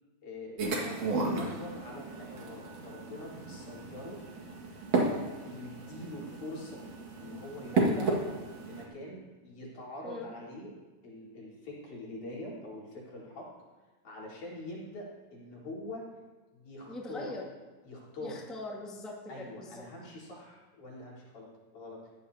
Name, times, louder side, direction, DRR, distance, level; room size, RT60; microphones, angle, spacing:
voice 1, 0.2-4.2 5.0-6.8 7.2-8.1 8.7-10.7 11.0-13.5 14.0-16.1 16.5-17.3 17.8-18.4 19.3-22.1, left 1 dB, 70° left, -6 dB, 5.4 m, -44 dB
sound 1, 0.6-8.8, right 3 dB, 55° right, 3.0 m, -33 dB
voice 2, 7.7-8.4 10.0-10.3 16.9-17.5 18.2-19.8, left 2 dB, ahead, -3 dB, 1.5 m, -41 dB
20.5 x 15.0 x 2.8 m, 1.3 s
omnidirectional pair, 3.7 m